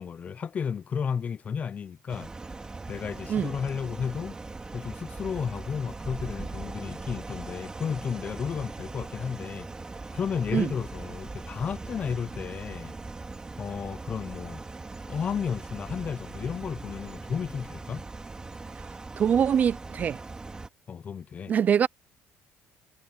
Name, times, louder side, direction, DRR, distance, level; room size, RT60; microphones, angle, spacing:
voice 1, 0.0-2.3 2.9-4.4 4.7-9.7 10.1-12.9 13.6-14.6 15.1-18.0 20.9-21.5, left 7 dB, 30° left, 0.5 m, -33 dB
sound 1, 2.1-20.7, right 3 dB, 15° right, 3.6 m, -40 dB
voice 2, 19.2-20.2 21.5-21.9, right 8 dB, 35° right, 0.3 m, -23 dB
cardioid pair, 125°, 5 cm